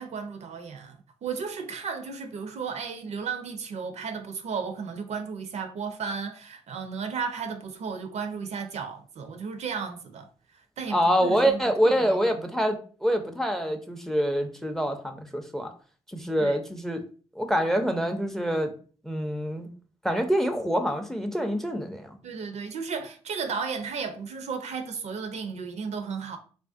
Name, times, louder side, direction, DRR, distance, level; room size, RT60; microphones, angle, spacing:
voice 1, 0.0-10.3 10.8-12.5 16.4-16.6 22.2-26.4, right 5 dB, 55° right, 0.4 m, -34 dB
voice 2, 10.9-15.7 16.1-17.0 17.4-18.7 19.0-19.7 20.0-22.2, equal, 5° left, 0.4 m, -26 dB
2.4 x 2.1 x 2.4 m
hypercardioid pair, 45°, 13 cm